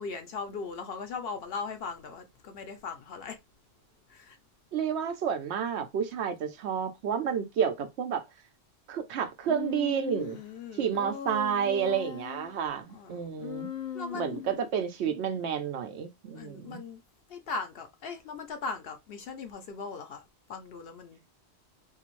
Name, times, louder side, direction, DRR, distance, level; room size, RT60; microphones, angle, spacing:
voice 1, 0.0-3.4 4.1-4.4 10.3-11.1 12.9-13.1 13.9-14.4 16.3-17.0 17.3-20.2 20.5-21.2, left 4 dB, 65° left, 0.9 m, -39 dB
voice 2, 4.7-8.2 8.9-10.4 10.8-13.7 14.1-16.8, right 7 dB, 90° right, 0.9 m, -30 dB
Human voice, 9.5-10.4 10.9-12.5 13.4-14.6, left 7 dB, 50° left, 0.5 m, -39 dB
2.7 x 2.5 x 3.0 m
omnidirectional pair, 1.1 m